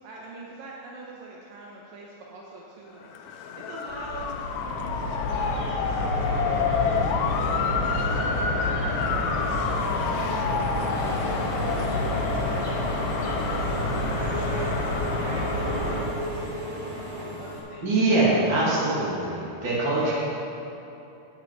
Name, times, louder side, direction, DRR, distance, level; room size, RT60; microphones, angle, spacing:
voice 1, 0.0-4.6 5.3-9.4 9.9-18.4 20.0-20.1, right 2 dB, 75° right, -3 dB, 2.5 m, -43 dB
Motor vehicle (road) / Siren, 3.0-15.7, left 7 dB, 80° left, 2.0 m, -31 dB
sound 1, 3.9-16.0, left 1 dB, 45° left, 3.1 m, -28 dB
Engine / Mechanisms, 10.7-17.6, right 1 dB, 55° right, 1.7 m, -36 dB
voice 2, 17.8-20.1, right 2 dB, 35° right, -7 dB, 2.7 m, -23 dB
9.8 x 9.5 x 4.7 m, 2.8 s
omnidirectional pair, 4.3 m